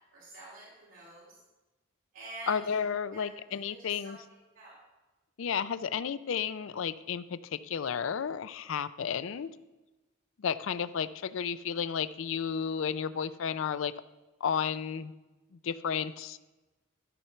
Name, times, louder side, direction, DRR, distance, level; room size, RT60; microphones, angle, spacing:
voice 1, 0.1-1.3 2.1-2.6 3.1-3.3 3.6-4.1 4.5-4.8, right 2 dB, 80° right, -7 dB, 3.2 m, -47 dB
voice 2, 2.5-4.2 5.4-9.5 10.4-13.9 14.4-15.1 15.6-16.4, left 7 dB, 75° left, 14 dB, 0.4 m, -32 dB
12.5 x 4.4 x 6.7 m, 1.1 s
head